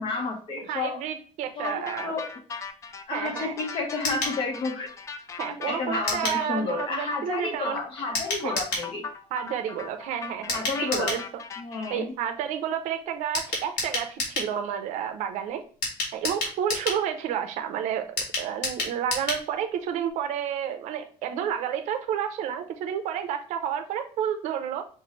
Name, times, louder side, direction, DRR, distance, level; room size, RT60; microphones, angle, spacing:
voice 1, 0.0-1.0 1.5-2.3 3.1-4.9 5.4-9.1 10.5-11.2 11.6-12.1, left 3 dB, 45° left, 3 dB, 1.2 m, -31 dB
voice 2, 0.7-2.1 3.1-3.5 5.4-7.8 8.4-8.6 9.3-11.2 11.9-15.6 16.1-18.1 18.4-24.8, right 9 dB, 70° right, 7 dB, 0.7 m, -30 dB
sound 1, 1.6-11.9, left 4 dB, 25° left, 0.3 m, -38 dB
sound 2, 4.0-4.4 6.1-6.4 8.1-8.9 10.5-11.2 13.3-14.5 15.8-17.0 18.2-19.4 19.7-19.8 20.1-20.2, left 2 dB, 85° left, 2.0 m, -30 dB
5.6 x 2.6 x 3.2 m, 0.43 s
cardioid pair, 160°, 12 cm